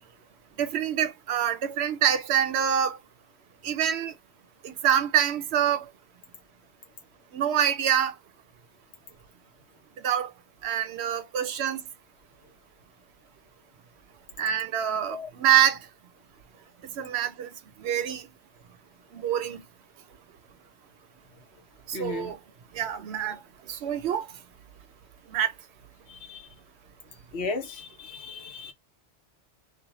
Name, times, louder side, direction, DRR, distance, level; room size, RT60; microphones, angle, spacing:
voice 1, 0.6-3.0 3.6-4.1 4.6-5.9 7.3-8.1 10.0-10.3 10.6-11.8 14.4-15.8 17.0-17.5 17.8-18.3 19.1-19.6 21.9-22.4 22.7-23.4 23.7-24.3 25.3-25.5, right 9 dB, 75° right, 0.8 m, -26 dB
voice 2, 21.9-22.3 26.1-26.5 27.3-28.7, left 3 dB, 70° left, 1.0 m, -35 dB
2.6 x 2.1 x 2.8 m
omnidirectional pair, 1.2 m